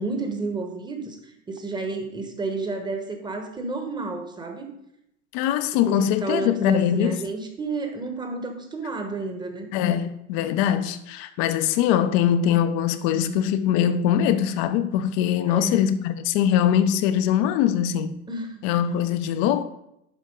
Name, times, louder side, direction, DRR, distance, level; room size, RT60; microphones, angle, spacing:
voice 1, 0.0-4.7 5.8-9.7 15.5-15.8 18.3-18.6, right 3 dB, 10° right, 1.1 m, -31 dB
voice 2, 5.3-7.2 9.7-18.1 18.6-19.6, left 9 dB, 35° left, 0.7 m, -22 dB
11.5 x 4.5 x 3.8 m
figure-of-eight pair, 95°, 44 cm